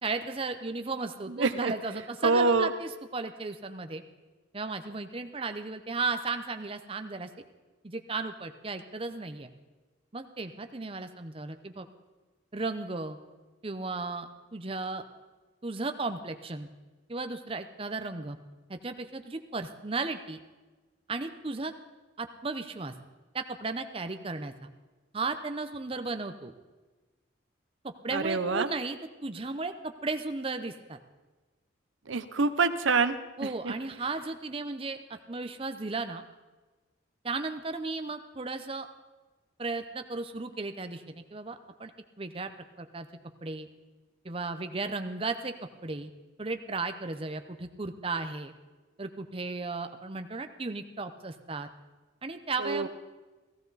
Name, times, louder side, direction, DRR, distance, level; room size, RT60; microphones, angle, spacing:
voice 1, 0.0-4.0 4.5-7.3 7.8-9.5 10.1-11.9 12.5-13.2 13.6-15.0 15.6-16.7 17.1-18.4 18.7-20.4 21.1-21.7 22.2-22.9 23.3-24.5 25.1-26.5 27.8-31.0 33.4-36.2 37.2-38.9 39.6-41.9 42.2-42.5 42.8-43.1 43.4-43.7 44.2-45.5 45.8-46.1 46.4-48.5 49.0-51.7 52.2-52.9, right 3 dB, 25° right, 8 dB, 0.7 m, -35 dB
voice 2, 1.3-1.7 2.2-2.7 28.1-28.7 32.1-33.7 52.6-52.9, right 4 dB, 75° right, 12 dB, 0.7 m, -26 dB
16.0 x 15.0 x 4.0 m, 1.2 s
head